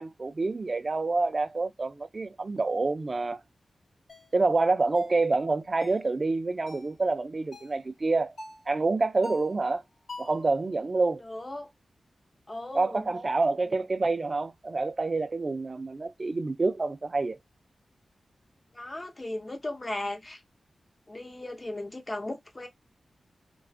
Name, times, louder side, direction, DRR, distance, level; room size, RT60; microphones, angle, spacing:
voice 1, 0.0-3.4 4.3-8.3 8.7-9.8 10.2-11.2 12.7-17.4, right 3 dB, 40° right, 0.4 m, -27 dB
sound 1, 4.1-4.3 4.9-5.2 5.8-6.1 6.7-6.9 7.5-7.8 8.4-8.7 9.2-9.6 10.1-10.4, left 2 dB, 60° left, 1.0 m, -43 dB
voice 2, 11.2-11.7 12.5-13.1 18.7-20.4 21.1-22.7, left 1 dB, 30° left, 0.8 m, -36 dB
2.4 x 2.3 x 2.4 m
cardioid pair, 70°, 0 cm